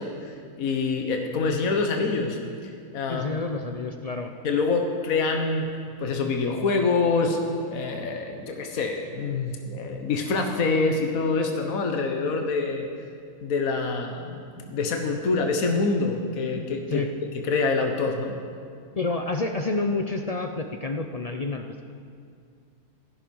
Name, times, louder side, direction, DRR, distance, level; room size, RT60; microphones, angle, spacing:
voice 1, 0.0-3.4 4.4-5.7 6.0-7.4 7.7-12.9 13.4-17.0 17.4-18.3, left 4 dB, 65° left, 3 dB, 1.6 m, -26 dB
voice 2, 3.1-4.3 16.9-17.1 19.0-21.9, left 3 dB, 45° left, 5 dB, 0.5 m, -29 dB
17.0 x 13.5 x 5.5 m, 2.3 s
omnidirectional pair, 1.6 m